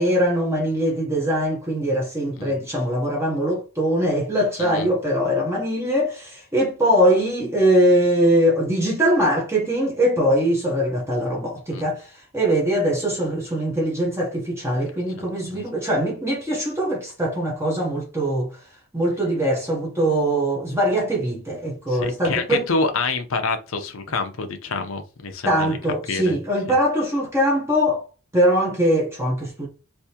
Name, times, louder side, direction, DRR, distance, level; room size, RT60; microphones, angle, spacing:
voice 1, 0.0-18.5 18.9-22.7 25.5-28.1 28.3-29.7, equal, 10° right, 0.8 m, -22 dB
voice 2, 4.6-4.9 11.7-11.8 15.5-15.6 21.9-25.8 26.1-26.4 26.7-26.8, left 4 dB, 70° left, 0.7 m, -27 dB
3.5 x 2.7 x 2.8 m
head